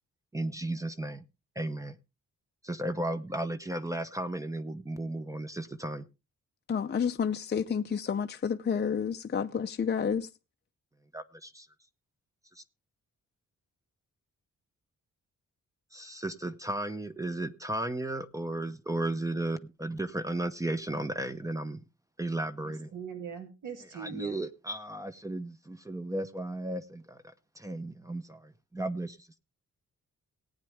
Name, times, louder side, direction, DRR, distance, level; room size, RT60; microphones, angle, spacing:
voice 1, 0.3-1.2 1.6-2.0 2.6-6.0 11.1-11.7 12.6-12.7 15.9-21.8 22.2-22.9 23.9-27.2 27.6-29.3, right 1 dB, 10° right, 0.7 m, -34 dB
voice 2, 6.7-10.3, left 7 dB, 35° left, 0.6 m, -30 dB
voice 3, 22.6-24.4, right 7 dB, 75° right, 2.8 m, -41 dB
18.0 x 9.0 x 3.5 m
wide cardioid pair, 135°, 31 cm